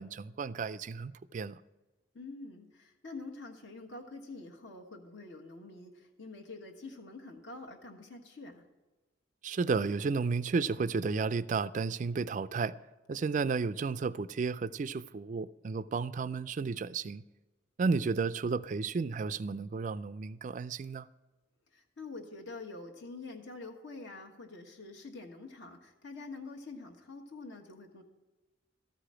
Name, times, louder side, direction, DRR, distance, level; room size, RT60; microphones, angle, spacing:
voice 1, 0.0-1.6 9.4-12.7 13.1-17.2 17.8-21.1, right 4 dB, 40° right, 0.3 m, -32 dB
voice 2, 2.1-8.6 13.1-13.3 21.7-28.0, left 3 dB, 70° left, 1.3 m, -46 dB
13.5 x 4.9 x 8.8 m
head